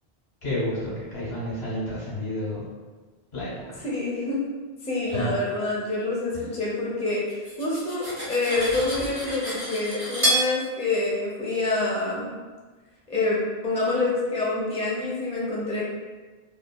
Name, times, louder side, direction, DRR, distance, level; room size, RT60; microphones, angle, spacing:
voice 1, 0.4-2.6 3.3-3.8 5.1-5.3, left 1 dB, 85° left, -8 dB, 1.5 m, -30 dB
voice 2, 3.8-4.4 4.8-12.3 13.1-15.8, left 2 dB, 10° left, -6 dB, 0.4 m, -27 dB
Cutlery silverware, 7.3-10.5, right 1 dB, 15° right, 1.0 m, -28 dB
3.1 x 2.2 x 2.2 m, 1.3 s
omnidirectional pair, 1.0 m